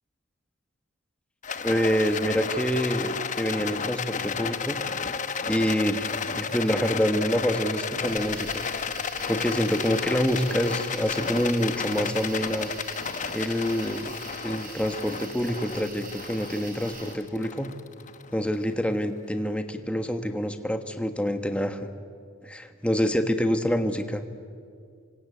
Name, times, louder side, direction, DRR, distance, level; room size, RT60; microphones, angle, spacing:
Rattle, 1.4-18.8, left 5 dB, 40° left, 1.0 m, -32 dB
voice 1, 1.6-4.8 5.5-8.6 9.3-12.7 13.3-14.1 14.4-17.7 18.3-21.9 22.4-24.2, equal, 5° left, 7 dB, 1.5 m, -26 dB
sound 1, 8.0-17.1, right 4 dB, 45° right, 4.7 m, -44 dB
28.0 x 25.0 x 8.5 m, 2.2 s
head